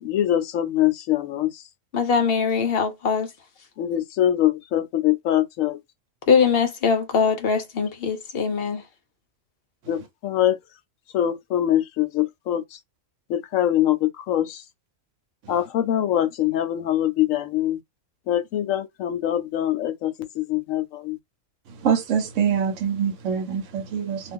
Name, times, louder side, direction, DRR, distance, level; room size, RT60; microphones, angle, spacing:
voice 1, 0.0-1.6 3.8-5.8 9.9-10.6 11.1-12.8 13.3-14.6 15.5-17.8 18.3-21.2, left 12 dB, 80° left, 1.0 m, -23 dB
voice 2, 1.9-3.3 6.3-8.8, left 6 dB, 55° left, 0.7 m, -22 dB
voice 3, 21.7-24.3, right 7 dB, 70° right, 1.0 m, -24 dB
2.4 x 2.4 x 3.5 m
omnidirectional pair, 1.4 m